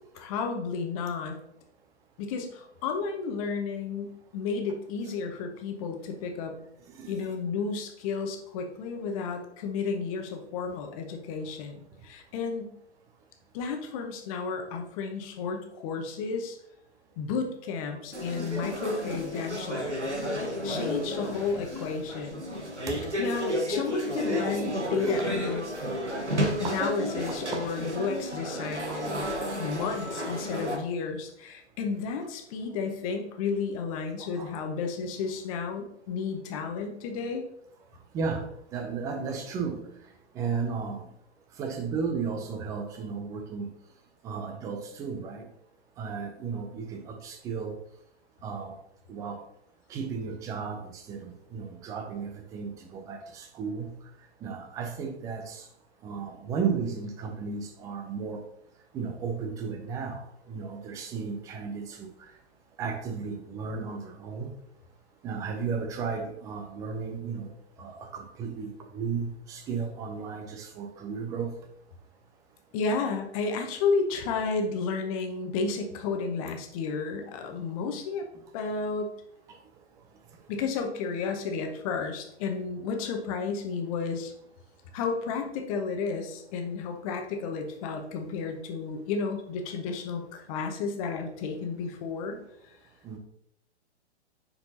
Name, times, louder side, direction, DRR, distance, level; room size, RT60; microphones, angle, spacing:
voice 1, 0.1-1.4 2.2-6.6 7.1-12.7 13.5-16.6 17.2-20.0 20.4-22.4 23.2-25.7 26.6-29.3 29.6-37.4 72.7-78.3 78.5-79.1 80.5-84.3 84.9-92.4, left 5 dB, 30° left, 4 dB, 1.0 m, -32 dB
voice 2, 7.0-7.3 22.9-23.0 25.1-25.2 26.6-26.8 27.2-27.6 28.9-29.2 34.2-34.5 38.1-39.8 40.3-41.0 41.6-43.7 44.2-45.5 46.0-47.8 48.4-48.7 49.1-49.4 49.9-53.9 54.4-55.7 56.0-58.4 58.9-62.3 62.8-64.5 65.2-67.5 67.8-71.5 93.0-93.2, right 5 dB, 10° right, 5 dB, 0.4 m, -34 dB
sound 1, 18.1-30.8, equal, 90° right, 1.3 m, -32 dB
9.3 x 4.5 x 2.8 m, 0.75 s
figure-of-eight pair, 115°, 34 cm